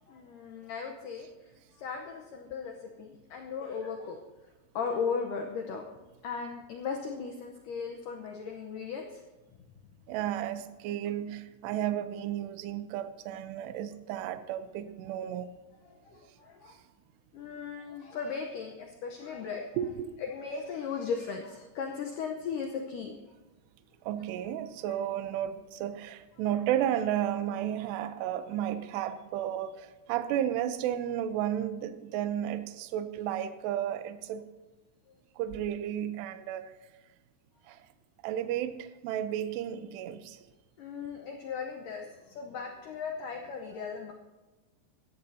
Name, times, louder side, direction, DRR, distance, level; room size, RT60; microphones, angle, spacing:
voice 1, 0.1-1.3 1.8-4.2 4.8-5.8 6.2-9.1 16.1-16.8 17.3-19.7 20.3-23.2 40.8-42.1 42.4-44.1, left 5 dB, 80° left, 1.9 m, -37 dB
voice 2, 10.1-15.5 19.8-20.2 24.0-34.5 35.4-36.7 37.7-37.9 38.2-40.4, right 11 dB, 80° right, 2.8 m, -33 dB
17.5 x 14.0 x 2.8 m
omnidirectional pair, 5.0 m